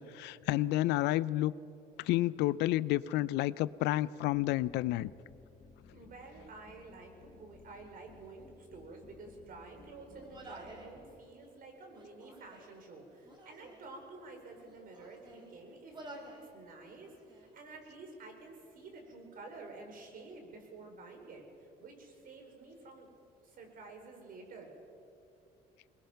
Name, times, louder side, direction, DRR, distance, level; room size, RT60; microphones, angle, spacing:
voice 1, 0.0-1.5 2.0-5.1, left 16 dB, 90° left, 19 dB, 0.5 m, -30 dB
sound 1, 4.3-11.2, left 5 dB, 40° left, 5.7 m, -59 dB
voice 2, 5.9-23.2 23.4-24.7, right 3 dB, 55° right, 3 dB, 4.6 m, -50 dB
Human voice, 10.1-11.0 11.9-12.8 13.2-13.9 14.6-15.5 15.9-16.5 16.8-17.5, right 1 dB, 25° right, 4.1 m, -52 dB
21.5 x 20.5 x 5.8 m, 2.7 s
cardioid pair, 110°, 17 cm